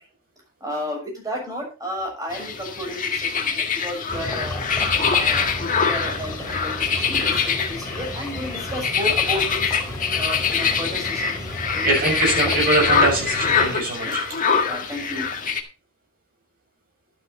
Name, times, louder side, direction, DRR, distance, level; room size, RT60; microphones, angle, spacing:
voice 1, 0.6-4.6 5.0-9.7 10.1-11.3 11.7-12.6 14.0-14.2 14.6-15.3, equal, 20° right, 0 dB, 6.6 m, -32 dB
sound 1, 2.3-15.6, left 6 dB, 40° left, 1.7 m, -24 dB
sound 2, 4.1-13.8, left 1 dB, 15° left, 2.7 m, -33 dB
voice 2, 11.8-14.2, right 2 dB, 45° right, 0 dB, 7.0 m, -22 dB
12.0 x 9.2 x 4.2 m, 0.30 s
head